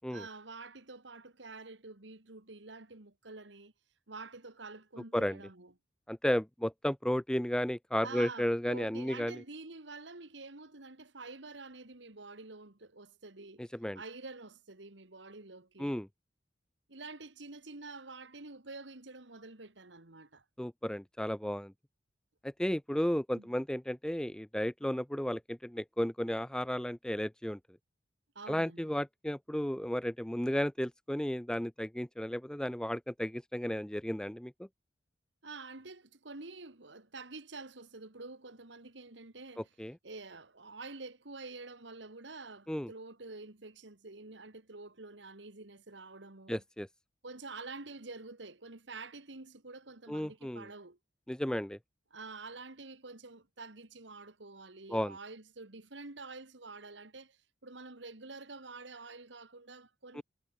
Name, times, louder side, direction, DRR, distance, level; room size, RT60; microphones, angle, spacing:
voice 1, 0.1-3.7 4.1-5.7 8.0-16.0 16.9-20.4 23.3-23.5 28.4-28.9 35.4-39.7 40.0-46.6 47.2-51.0 52.1-60.2, right 3 dB, 70° right, 2.1 m, -48 dB
voice 2, 6.1-9.4 13.6-14.0 15.8-16.1 20.6-21.7 22.4-27.6 28.5-34.5 39.8-39.9 42.7-42.9 46.5-46.9 50.1-50.7 51.3-51.8 54.9-55.1 60.1-60.2, equal, 5° left, 0.5 m, -33 dB
head